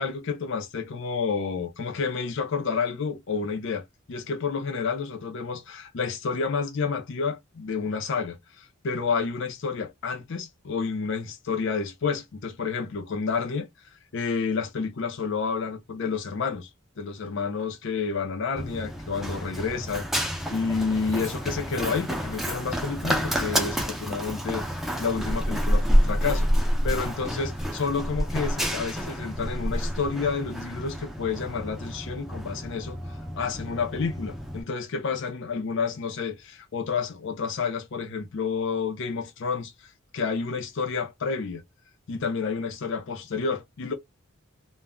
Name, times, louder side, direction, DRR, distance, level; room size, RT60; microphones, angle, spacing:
voice 1, 0.0-13.7 14.1-16.7 17.0-41.6 42.1-43.9, left 5 dB, 60° left, 0.5 m, -30 dB
Run, 18.6-34.6, equal, ahead, 0.4 m, -28 dB
2.1 x 2.0 x 3.6 m
head